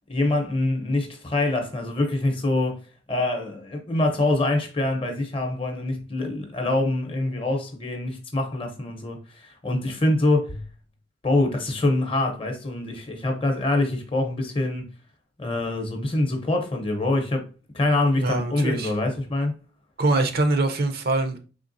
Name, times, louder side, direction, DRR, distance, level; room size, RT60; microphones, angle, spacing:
voice 1, 0.1-10.6 11.2-14.9 15.4-17.5 17.7-19.6, left 2 dB, 30° left, 0.7 m, -25 dB
voice 2, 18.2-18.9 20.0-21.4, right 2 dB, 50° right, 0.6 m, -23 dB
3.7 x 3.3 x 2.6 m
head